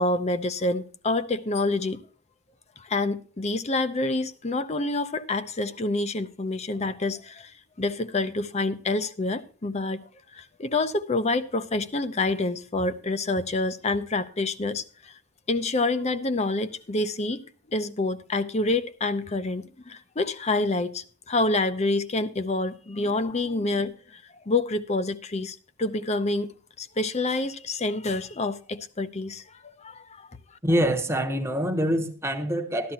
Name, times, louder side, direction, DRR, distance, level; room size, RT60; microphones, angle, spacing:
voice 1, 0.0-2.0 2.8-7.5 7.8-15.1 15.5-17.4 17.7-26.5 26.8-30.3, left 2 dB, 30° left, 0.6 m, -27 dB
voice 2, 30.6-32.9, equal, 10° right, 1.0 m, -25 dB
13.0 x 12.5 x 2.8 m
head